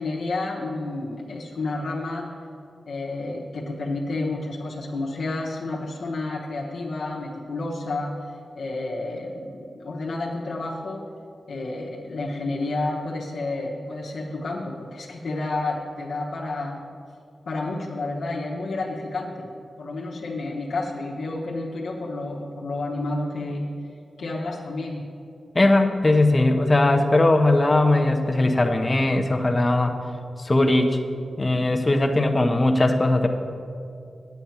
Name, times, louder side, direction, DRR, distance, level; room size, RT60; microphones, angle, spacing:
voice 1, 0.0-2.3 2.9-8.1 8.5-11.1 11.5-16.8 17.5-19.5 19.8-23.7 24.2-25.0, left 2 dB, 85° left, -3 dB, 1.1 m, -30 dB
voice 2, 25.5-30.0 30.4-31.0 31.4-33.3, left 2 dB, 25° left, 4 dB, 0.8 m, -19 dB
9.0 x 8.2 x 5.8 m, 2.5 s
cardioid pair, 65°, 0 cm